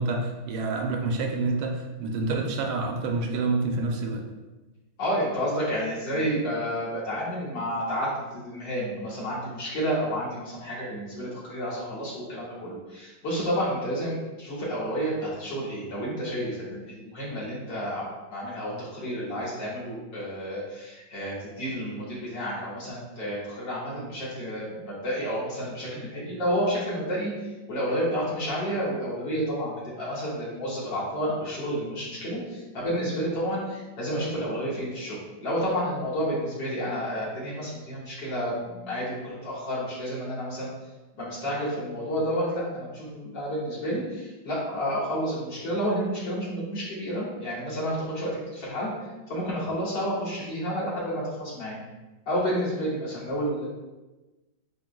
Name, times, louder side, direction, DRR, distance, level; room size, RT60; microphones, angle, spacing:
voice 1, 0.0-4.2, right 3 dB, 85° right, 2 dB, 1.5 m, -28 dB
voice 2, 5.0-18.0 18.3-35.2 35.4-40.7 41.2-51.8 52.3-53.7, equal, 65° left, -8 dB, 2.4 m, -30 dB
8.4 x 2.8 x 2.2 m, 1.1 s
omnidirectional pair, 2.2 m